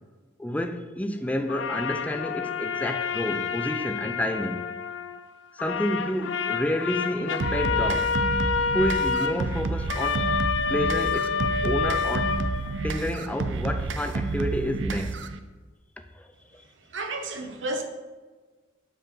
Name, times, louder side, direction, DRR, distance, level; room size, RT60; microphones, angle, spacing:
voice 1, 0.4-4.7 5.5-8.1 8.7-10.3 10.7-11.4 11.6-12.4 12.8-15.3 16.1-16.6, left 1 dB, 10° left, 0.5 m, -30 dB
sound 1, 1.5-5.2 5.6-13.1, left 5 dB, 75° left, 0.5 m, -28 dB
sound 2, 7.4-15.4, right 3 dB, 70° right, 0.5 m, -30 dB
voice 2, 16.9-17.8, right 2 dB, 85° right, 1.0 m, -31 dB
8.9 x 4.8 x 4.5 m
head